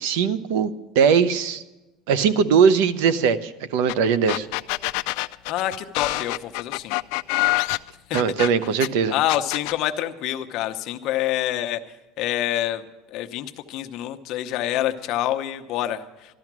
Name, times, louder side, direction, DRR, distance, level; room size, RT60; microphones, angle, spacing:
voice 1, 0.0-1.6 2.1-4.5 8.1-9.1, right 6 dB, 80° right, 14 dB, 0.8 m, -20 dB
sound 1, 3.9-4.0 4.3-8.9 9.3-9.8, left 23 dB, 70° left, 0.4 m, -25 dB
voice 2, 5.5-7.0 7.4-7.5 9.1-11.8 12.2-12.8 13.1-16.4, left 13 dB, 55° left, 7 dB, 0.8 m, -27 dB
13.5 x 12.5 x 6.1 m, 1.1 s
cardioid pair, 150°, 0 cm